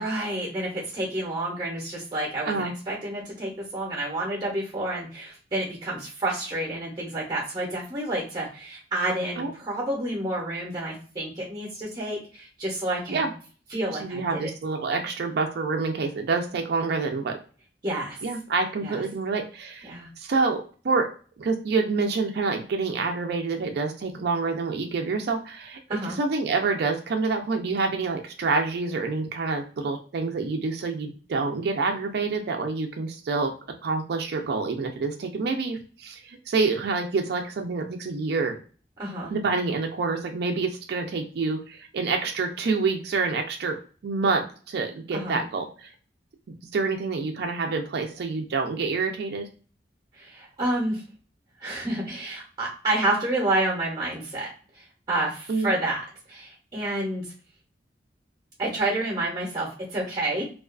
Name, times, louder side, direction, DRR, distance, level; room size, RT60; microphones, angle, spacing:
voice 1, 0.0-13.3 13.7-14.5 17.8-18.2 18.8-19.0 19.8-20.1 25.9-26.2 39.0-39.3 45.1-45.4 50.1-51.0 51.6-54.5 54.8-56.0 56.3-57.3 58.6-60.4, right 1 dB, 25° right, -2 dB, 0.6 m, -29 dB
voice 2, 14.0-17.4 18.2-21.1 21.4-33.5 33.8-38.6 39.3-45.9 46.7-49.5 55.5-55.7, right 4 dB, 65° right, 3 dB, 0.4 m, -27 dB
2.3 x 2.3 x 2.3 m, 0.39 s
head